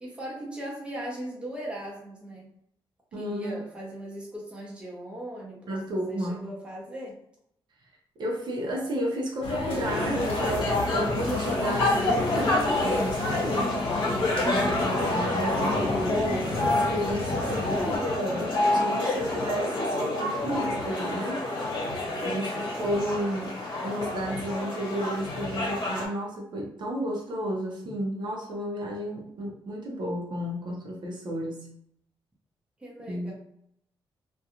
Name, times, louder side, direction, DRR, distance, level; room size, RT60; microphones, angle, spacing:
voice 1, 0.0-2.5 3.1-5.7 6.1-7.2 14.4-14.9 22.2-22.7 27.8-27.9 32.8-33.3, equal, 10° right, -4 dB, 0.7 m, -39 dB
voice 2, 3.1-3.6 5.7-6.5 8.2-13.7 14.4-21.4 22.2-23.5 23.8-31.7 33.1-33.3, equal, 55° right, -2 dB, 0.6 m, -32 dB
sound 1, 9.4-18.0, left 3 dB, 85° left, 0.7 m, -33 dB
sound 2, 9.8-26.0, left 2 dB, 55° left, 1.2 m, -28 dB
2.4 x 2.2 x 2.9 m, 0.70 s
wide cardioid pair, 155°, 9 cm